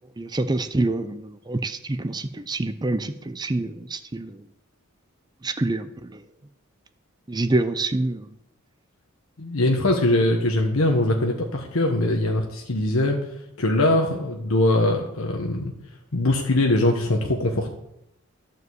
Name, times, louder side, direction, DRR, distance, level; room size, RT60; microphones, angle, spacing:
voice 1, 0.2-4.4 5.4-6.2 7.3-8.3, right 2 dB, 20° right, 11 dB, 0.5 m, -26 dB
voice 2, 9.4-13.2 13.6-15.7 16.1-17.7, left 1 dB, 85° left, 2 dB, 1.2 m, -22 dB
12.0 x 5.3 x 7.9 m, 0.84 s
head